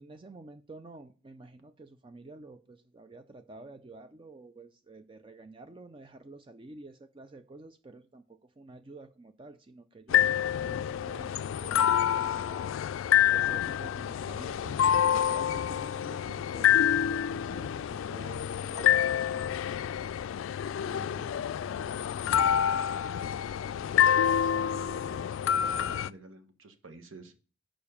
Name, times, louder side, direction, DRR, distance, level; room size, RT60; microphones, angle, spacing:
voice 1, 0.0-12.7 13.3-14.8 15.1-19.8 20.7-23.1, right 3 dB, 25° right, 0.4 m, -50 dB
sound 1, 10.1-26.1, left 9 dB, 80° left, 0.3 m, -27 dB
voice 2, 24.1-27.4, right 3 dB, 90° right, 1.4 m, -50 dB
6.8 x 5.1 x 7.0 m
head